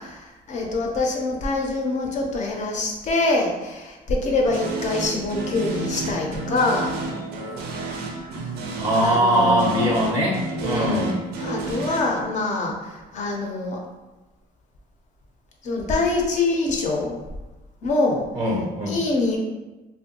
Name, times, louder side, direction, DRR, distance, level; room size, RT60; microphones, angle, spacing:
voice 1, 0.0-6.9 9.0-10.0 10.6-13.8 15.6-17.2 17.8-18.2 18.9-19.4, left 2 dB, 45° left, 0 dB, 0.5 m, -25 dB
sound 1, 4.4-12.0, right 2 dB, 75° right, 0.5 m, -31 dB
voice 2, 8.8-11.1 18.3-19.0, equal, 15° right, -3 dB, 0.5 m, -21 dB
2.6 x 2.2 x 2.7 m, 1.1 s
cardioid pair, 110°, 17 cm